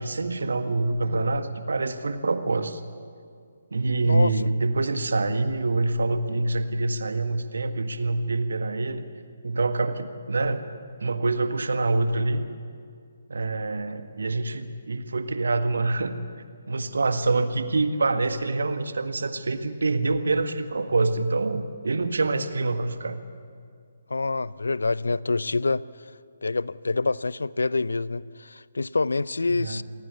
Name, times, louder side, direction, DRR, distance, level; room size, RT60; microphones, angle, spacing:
voice 1, 0.0-2.8 3.7-9.0 9.4-10.6 11.0-12.4 13.3-16.2 16.7-23.2 29.5-29.8, right 3 dB, 65° right, 9 dB, 1.7 m, -26 dB
voice 2, 4.0-4.3 24.1-25.8 26.4-29.8, left 3 dB, 70° left, 20 dB, 0.6 m, -26 dB
27.0 x 19.0 x 8.3 m, 2.2 s
figure-of-eight pair, 135°, 0 cm